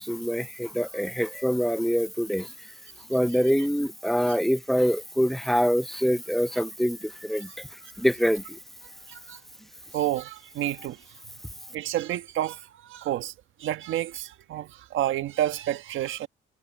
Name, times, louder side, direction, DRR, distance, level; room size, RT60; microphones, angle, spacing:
voice 1, 0.0-2.5 3.1-7.5 8.0-8.4, equal, ahead, 0.4 m, -25 dB
voice 2, 9.1-9.4 9.9-11.0 11.7-13.3 13.6-16.3, right 12 dB, 80° right, 1.3 m, -30 dB
cardioid pair, 90°, 20 cm